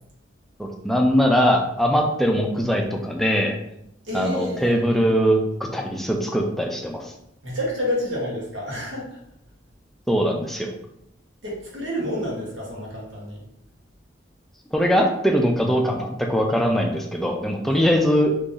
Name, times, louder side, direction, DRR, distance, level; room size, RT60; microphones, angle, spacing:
voice 1, 0.6-3.6 4.1-7.1 10.1-10.7 14.7-18.3, equal, ahead, 1 dB, 0.3 m, -21 dB
voice 2, 4.0-4.7 7.4-9.2 11.4-13.4, left 1 dB, 80° right, -4 dB, 1.3 m, -29 dB
2.9 x 2.6 x 3.8 m, 0.79 s
head